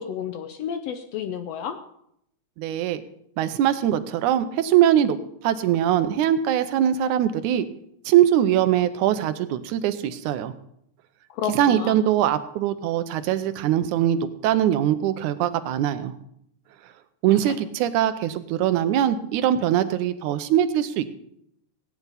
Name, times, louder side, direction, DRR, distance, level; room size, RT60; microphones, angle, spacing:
voice 1, 0.0-1.8 11.3-12.0 17.5-17.6, left 8 dB, 75° left, 8 dB, 1.6 m, -31 dB
voice 2, 2.6-3.0 3.4-5.2 5.4-7.6 8.1-10.5 11.5-16.1 17.2-21.1, right 11 dB, 85° right, 12 dB, 2.2 m, -22 dB
16.5 x 9.4 x 4.1 m, 0.73 s
omnidirectional pair, 3.4 m